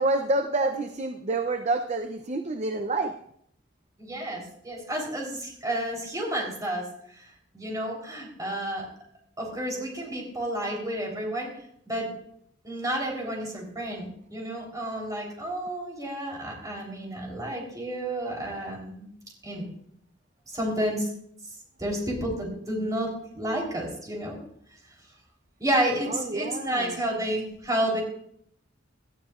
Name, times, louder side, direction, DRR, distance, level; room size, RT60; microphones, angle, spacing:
voice 1, 0.0-3.1 26.1-27.0, right 2 dB, 35° right, 6 dB, 0.6 m, -28 dB
voice 2, 4.0-6.8 7.1-7.3 7.5-8.9 9.4-11.5 11.9-12.1 12.6-19.1 19.4-19.6 20.5-21.1 21.8-24.4 25.6-28.0, right 1 dB, 20° right, -1 dB, 3.7 m, -30 dB
18.0 x 12.5 x 2.5 m, 0.68 s
head